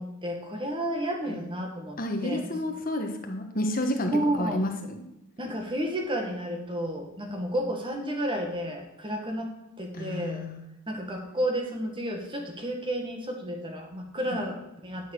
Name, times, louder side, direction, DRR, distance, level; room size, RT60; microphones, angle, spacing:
voice 1, 0.0-2.6 4.1-4.6 5.4-9.5 9.8-10.4 10.9-15.1, right 1 dB, 25° right, 2 dB, 1.7 m, -31 dB
voice 2, 2.0-5.0 9.9-10.6 14.3-14.4, left 1 dB, 40° left, 4 dB, 1.4 m, -31 dB
10.0 x 6.4 x 6.3 m, 0.87 s
head